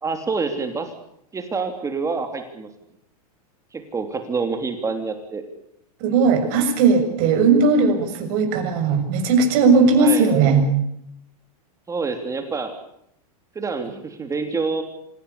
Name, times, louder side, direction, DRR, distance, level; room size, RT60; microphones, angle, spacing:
voice 1, 0.0-0.9 1.3-2.7 3.7-5.4 10.0-10.3 11.9-12.7 13.5-14.8, right 4 dB, 15° right, 6 dB, 3.2 m, -27 dB
voice 2, 6.0-10.7, right 4 dB, 50° right, 5 dB, 7.1 m, -17 dB
27.0 x 17.0 x 8.5 m, 0.75 s
hypercardioid pair, 120°, 20 cm